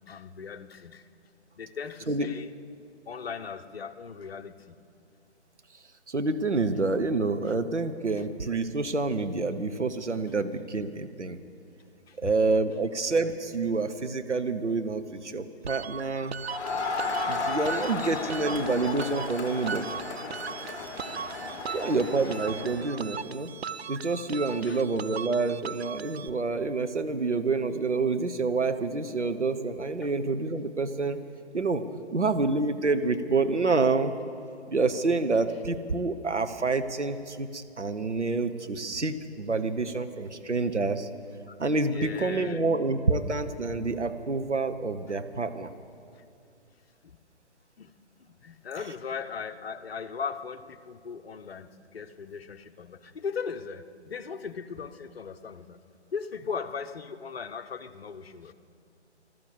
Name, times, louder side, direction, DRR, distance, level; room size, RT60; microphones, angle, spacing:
voice 1, 0.1-1.1 1.6-2.5 3.1-4.8 7.5-7.6 12.1-12.3 17.6-18.5 21.1-21.9 24.6-24.8 30.0-30.1 41.5-41.6 41.9-42.7 45.1-45.2 47.0-47.2 47.8-47.9 48.2-55.8 56.1-58.5, left 6 dB, 60° left, 9 dB, 0.9 m, -38 dB
voice 2, 6.1-11.4 12.2-16.4 17.3-19.9 21.7-23.5 23.9-31.2 31.5-31.8 32.1-34.1 34.7-41.1 41.6-45.7, right 3 dB, 90° right, 8 dB, 0.9 m, -28 dB
sound 1, 15.7-26.3, right 7 dB, 65° right, 0.6 m, -39 dB
Crowd, 16.4-23.0, left 3 dB, 30° left, 2.3 m, -34 dB
14.0 x 12.5 x 8.1 m, 2.5 s
figure-of-eight pair, 135°, 34 cm